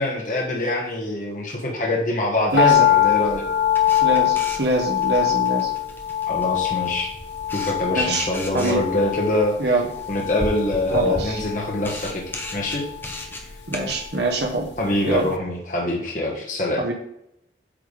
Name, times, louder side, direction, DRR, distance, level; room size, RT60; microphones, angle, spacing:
voice 1, 0.0-3.4 6.3-7.1 7.5-9.6 10.1-12.8 14.8-16.8, left 1 dB, 45° left, -1 dB, 1.2 m, -24 dB
voice 2, 2.5-2.9 4.0-5.7 7.9-8.3 8.5-8.8 9.6-9.8 10.9-11.4 13.7-14.7 15.0-15.3 16.8-16.9, right 2 dB, 70° right, -1 dB, 1.1 m, -23 dB
sound 1, 2.6-14.8 15.1-15.2, left 12 dB, 80° left, 0.7 m, -24 dB
Camera, 3.7-14.1, left 1 dB, 10° left, 0.9 m, -36 dB
8.5 x 3.4 x 5.1 m, 0.79 s
head